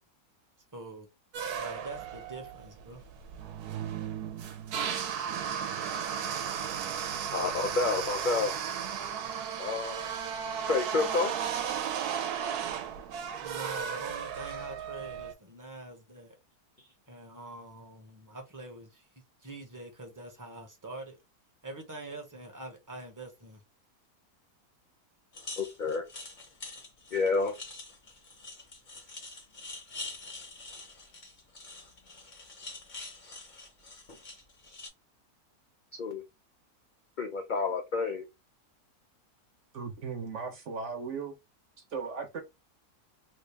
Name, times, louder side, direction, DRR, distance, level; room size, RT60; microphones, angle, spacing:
voice 1, 0.7-1.1 1.5-3.0 13.4-16.4 17.1-19.0 19.4-21.2 21.6-23.6, right 2 dB, 15° right, 0.8 m, -44 dB
sound 1, 1.3-15.3, right 8 dB, 85° right, 1.2 m, -35 dB
voice 2, 7.3-8.6 9.6-10.0 10.7-11.3 25.6-26.0 27.1-27.6 35.9-36.2 37.2-38.2, left 4 dB, 70° left, 0.4 m, -29 dB
sound 2, 25.3-34.9, left 3 dB, 35° left, 0.9 m, -45 dB
voice 3, 39.7-41.4 41.9-42.4, right 5 dB, 55° right, 1.1 m, -37 dB
3.3 x 2.5 x 3.2 m
omnidirectional pair, 1.6 m